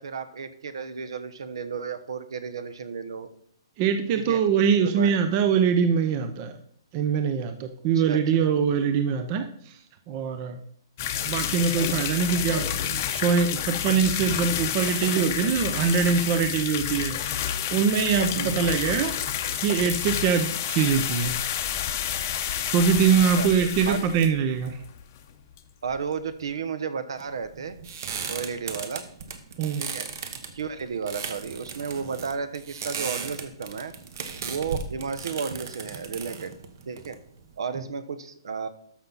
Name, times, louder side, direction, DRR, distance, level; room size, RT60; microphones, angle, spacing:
voice 1, 0.0-3.3 4.2-4.4 4.8-5.2 7.9-8.2 11.0-11.3 18.3-18.7 23.3-23.5 23.9-24.0 25.8-27.7 28.3-29.0 29.8-30.1 30.5-33.9 34.4-36.5 36.9-37.2 37.6-38.7, right 6 dB, 65° right, 12 dB, 1.0 m, -33 dB
voice 2, 3.8-6.5 6.9-9.5 10.1-10.6 11.3-17.2 17.7-19.2 19.6-21.4 22.7-24.8 29.6-29.8, right 6 dB, 25° right, 8 dB, 0.6 m, -23 dB
sound 1, 11.0-25.3 25.6-25.7 25.9-26.0 26.4-26.5, left 10 dB, 30° left, 0.7 m, -29 dB
sound 2, 27.2-37.5, right 6 dB, 40° right, 1.0 m, -36 dB
13.0 x 5.7 x 4.0 m, 0.64 s
hypercardioid pair, 175°, 3 cm